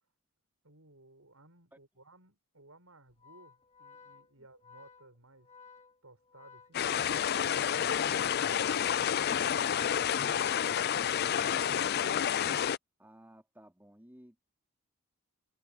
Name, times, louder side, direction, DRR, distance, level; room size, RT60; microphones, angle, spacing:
voice 1, 0.6-5.5 6.0-11.7, right 2 dB, 70° right, 6.8 m, -59 dB
Organ, 3.1-12.3, left 5 dB, 25° left, 4.6 m, -57 dB
sound 1, 6.7-12.8, left 9 dB, 45° left, 0.4 m, -29 dB
voice 2, 13.0-14.4, right 1 dB, 10° right, 4.0 m, -56 dB
head